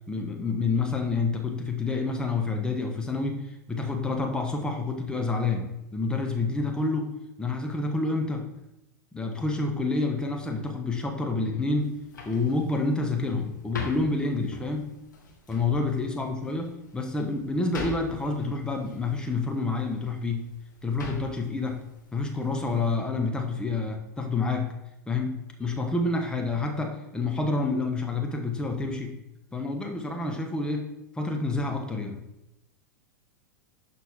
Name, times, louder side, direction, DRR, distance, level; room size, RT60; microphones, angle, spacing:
voice 1, 0.1-7.1 7.4-8.4 9.1-11.9 12.2-14.9 15.5-20.4 20.8-21.8 22.1-24.7 25.1-29.1 29.5-30.9 31.1-32.2, left 3 dB, 10° left, 2 dB, 1.0 m, -28 dB
sound 1, 11.8-23.0, left 3 dB, 75° left, 1.8 m, -44 dB
12.0 x 4.4 x 3.6 m, 0.87 s
figure-of-eight pair, 90°, 10 cm